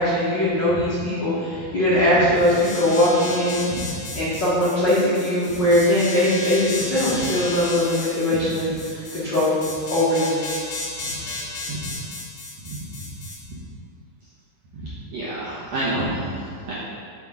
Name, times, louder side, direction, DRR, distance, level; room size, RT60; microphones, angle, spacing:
voice 1, 0.0-3.6 4.1-9.6 9.9-10.4, left 1 dB, 55° left, -11 dB, 1.2 m, -21 dB
sound 1, 2.4-13.4, left 3 dB, 85° left, 1.2 m, -33 dB
voice 2, 12.6-13.0 14.7-16.7, right 1 dB, 65° right, -9 dB, 1.7 m, -29 dB
8.7 x 6.2 x 3.7 m, 2.2 s
omnidirectional pair, 4.7 m